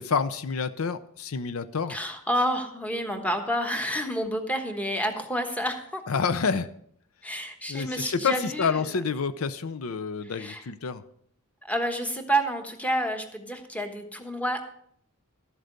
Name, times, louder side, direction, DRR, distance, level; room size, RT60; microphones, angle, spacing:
voice 1, 0.0-2.0 6.1-6.7 7.7-11.0, left 5 dB, 80° left, 13 dB, 0.6 m, -28 dB
voice 2, 1.9-6.0 7.2-9.0 10.2-10.6 11.6-14.6, right 1 dB, 5° left, 5 dB, 1.2 m, -29 dB
12.5 x 7.9 x 5.2 m, 0.65 s
head